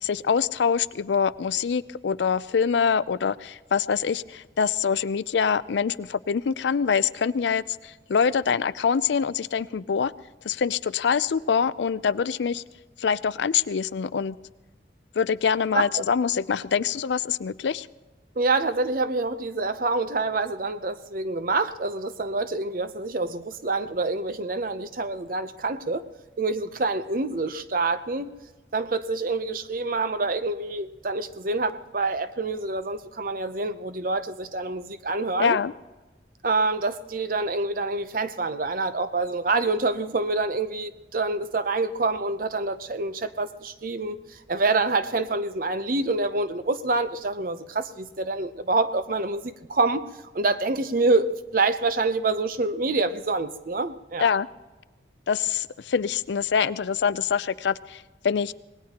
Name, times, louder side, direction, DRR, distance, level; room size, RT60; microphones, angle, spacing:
voice 1, 0.0-10.1 10.4-12.6 13.0-14.4 15.2-17.9 35.4-35.7 54.2-54.5 55.3-58.5, left 6 dB, 80° left, 17 dB, 0.4 m, -25 dB
voice 2, 18.4-26.0 26.4-28.3 28.7-35.6 36.4-50.1 50.3-54.3, right 3 dB, 50° right, 11 dB, 0.7 m, -26 dB
25.5 x 19.5 x 2.9 m, 1.2 s
head